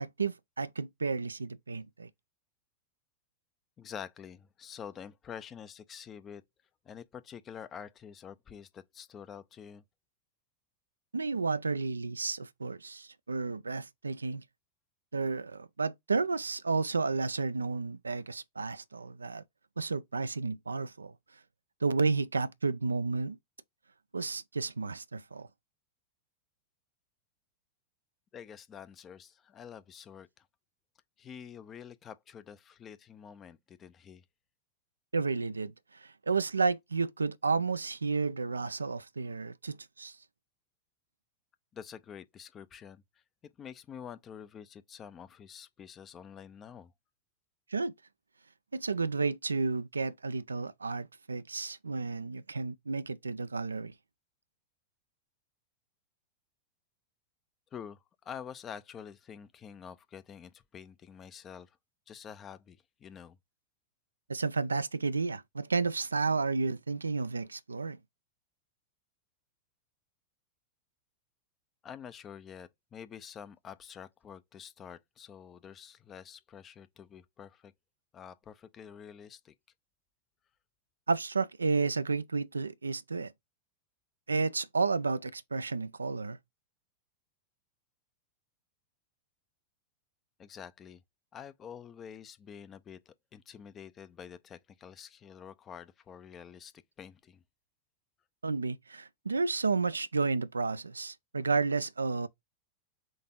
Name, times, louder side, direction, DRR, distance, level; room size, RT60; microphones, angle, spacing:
voice 1, 0.0-2.1 11.1-14.4 15.1-19.4 19.8-21.1 21.8-23.4 24.1-25.5 35.1-40.2 47.7-47.9 48.7-53.9 64.3-68.0 81.1-83.3 84.3-86.4 98.4-102.3, right 4 dB, 75° right, 0.3 m, -32 dB
voice 2, 3.8-6.4 6.8-9.8 28.3-30.5 31.2-34.2 41.7-43.0 43.4-46.9 57.7-61.8 62.1-63.4 71.8-77.7 78.1-79.5 90.4-91.0 91.3-97.4, left 8 dB, 25° left, 0.5 m, -47 dB
3.9 x 3.5 x 3.7 m
figure-of-eight pair, 90°, 0 cm